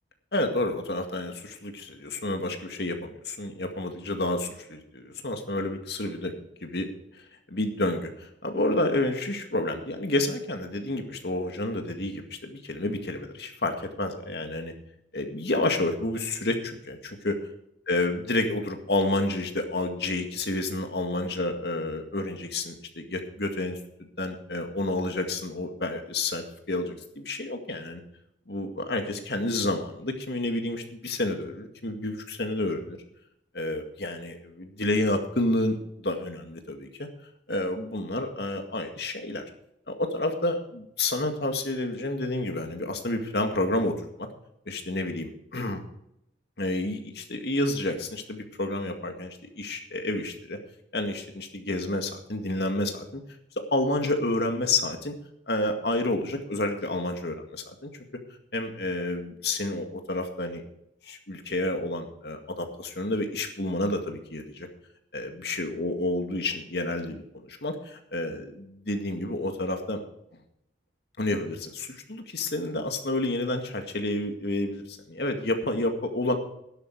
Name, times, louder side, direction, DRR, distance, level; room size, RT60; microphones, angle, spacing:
voice 1, 0.3-6.3 6.6-6.9 7.5-14.7 15.1-17.4 17.9-23.8 24.2-28.0 28.5-33.0 33.5-37.1 37.5-39.4 39.9-43.9 44.2-44.3 44.7-45.8 46.6-50.6 50.9-53.2 53.6-55.2 55.5-57.6 58.5-60.6 61.0-64.7 65.1-70.0 71.2-76.4, left 2 dB, 60° left, 5 dB, 2.0 m, -29 dB
12.5 x 11.0 x 4.8 m, 0.77 s
head